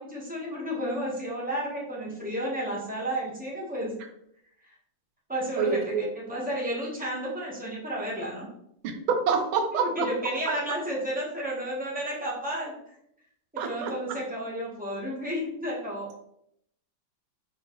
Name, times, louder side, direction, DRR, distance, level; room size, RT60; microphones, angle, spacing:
voice 1, 0.0-3.9 5.3-8.5 10.0-12.7 13.5-16.2, equal, 10° right, -5 dB, 0.4 m, -32 dB
voice 2, 5.6-6.0 8.8-10.6 13.6-14.2, right 5 dB, 90° right, 5 dB, 1.5 m, -28 dB
4.3 x 3.8 x 3.0 m, 0.75 s
omnidirectional pair, 2.1 m